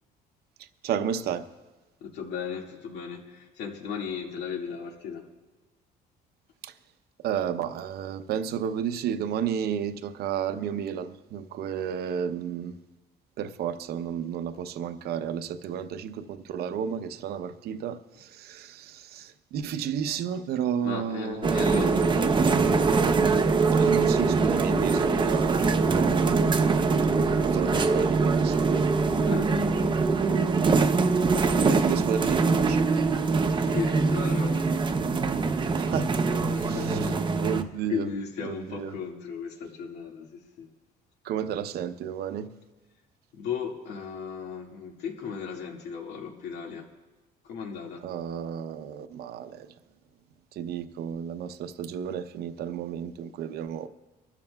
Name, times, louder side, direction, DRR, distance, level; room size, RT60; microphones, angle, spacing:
voice 1, 0.6-1.5 6.6-6.8 7.2-12.8 13.4-22.1 23.7-26.7 27.4-28.6 31.6-32.9 35.7-36.2 36.7-38.1 38.4-39.0 41.2-42.5 48.0-49.8 50.5-53.9, right 8 dB, 70° right, 0.8 m, -32 dB
voice 2, 2.0-5.3 20.8-22.8 29.3-30.0 33.6-34.7 36.5-37.6 37.9-40.7 43.3-46.9 47.4-48.1, left 6 dB, 85° left, 2.0 m, -36 dB
sound 1, 21.4-37.6, right 4 dB, 30° right, 0.7 m, -23 dB
25.0 x 13.0 x 2.3 m
cardioid pair, 110°, 17 cm